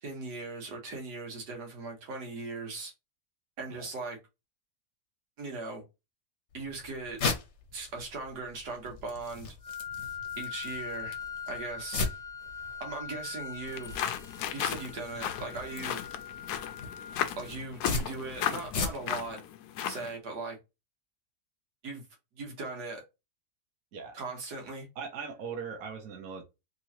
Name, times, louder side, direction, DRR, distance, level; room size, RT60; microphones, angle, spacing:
voice 1, 0.0-2.9 3.6-4.2 5.4-5.8 6.5-7.2 7.7-9.5 10.4-11.2 11.5-12.1 12.8-14.1 14.5-16.0 17.4-19.4 19.9-20.6 21.8-22.0 22.4-23.0 24.1-24.9, right 3 dB, 90° right, 1.8 m, -39 dB
sound 1, 6.5-19.3, left 4 dB, 55° left, 1.0 m, -39 dB
Wind instrument woodwind instrument, 9.6-17.6, left 7 dB, 35° right, 0.8 m, -42 dB
sound 2, 13.7-20.2, left 10 dB, 80° left, 1.1 m, -35 dB
voice 2, 25.0-26.4, right 6 dB, 65° right, 1.3 m, -40 dB
3.7 x 3.1 x 2.9 m
omnidirectional pair, 1.7 m